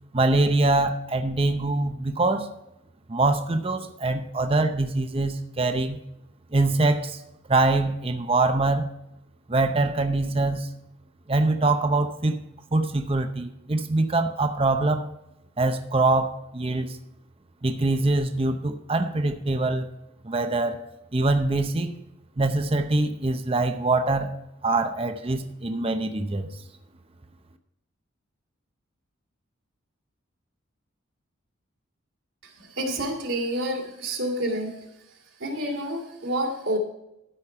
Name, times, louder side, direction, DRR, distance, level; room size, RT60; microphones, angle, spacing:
voice 1, 0.1-2.5 3.1-6.0 6.5-7.2 7.5-8.9 9.5-10.7 11.3-12.4 12.7-15.1 15.6-17.0 17.6-19.9 20.2-20.8 21.1-22.0 22.4-24.3 24.6-26.5, right 2 dB, 30° right, 7 dB, 0.7 m, -24 dB
voice 2, 32.8-34.7 35.4-36.8, right 1 dB, 75° right, 0 dB, 2.6 m, -28 dB
13.0 x 5.2 x 5.7 m, 0.85 s
head